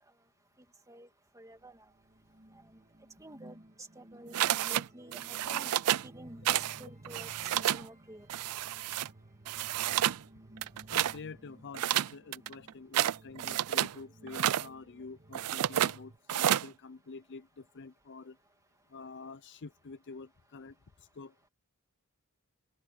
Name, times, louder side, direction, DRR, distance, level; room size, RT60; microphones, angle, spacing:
voice 1, 1.4-1.7 3.2-3.6 4.0-4.4 4.6-5.7 6.0-8.3, right 1 dB, 15° right, 2.3 m, -50 dB
sound 1, 1.5-16.2, right 1 dB, 35° right, 1.7 m, -56 dB
sound 2, 4.3-4.8 5.1-6.1 6.4-6.8 7.0-7.8 8.3-9.1 9.5-10.2 10.6-11.2 11.7-13.9 14.3-14.7 15.3-15.9 16.3-16.7, right 12 dB, 85° right, 0.4 m, -30 dB
voice 2, 10.9-18.4 18.9-20.7 21.0-21.3, left 4 dB, 55° left, 0.6 m, -47 dB
open air
head